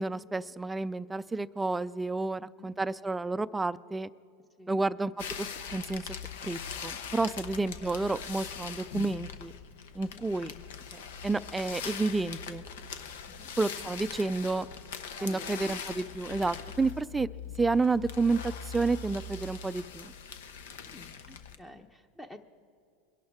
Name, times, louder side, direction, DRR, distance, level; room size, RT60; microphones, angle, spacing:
voice 1, 0.0-4.1 4.7-6.2 6.4-9.5 9.9-10.5 11.2-12.6 13.6-14.7 15.2-17.3 17.6-20.1, right 3 dB, 10° right, 15 dB, 0.3 m, -30 dB
voice 2, 2.4-2.7 4.6-4.8 7.7-8.0 10.0-10.3 13.3-13.5 13.8-13.9 15.2-15.8 17.3-17.5 20.9-22.4, left 1 dB, 10° left, 7 dB, 0.8 m, -50 dB
sound 1, 5.2-21.6, left 6 dB, 85° left, 0.9 m, -41 dB
23.0 x 11.0 x 3.6 m, 2.5 s
supercardioid pair, 115°, 0 cm